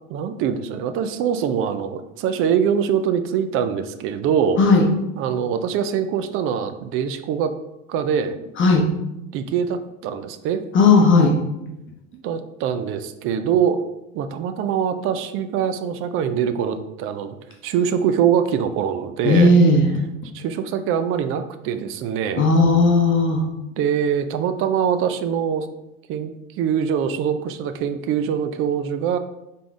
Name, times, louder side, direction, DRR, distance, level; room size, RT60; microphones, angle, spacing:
voice 1, 0.1-4.6 5.2-7.5 7.9-8.4 9.3-10.7 12.1-13.8 14.1-17.4 17.6-19.5 20.3-22.4 23.8-25.7 26.1-26.3 26.6-29.2, right 8 dB, 35° right, 10 dB, 0.4 m, -23 dB
voice 2, 8.6-8.9 10.7-11.4 19.2-19.9 22.4-23.5, left 2 dB, 30° left, 2 dB, 0.8 m, -15 dB
3.8 x 3.6 x 3.7 m, 0.90 s
hypercardioid pair, 90°, 41 cm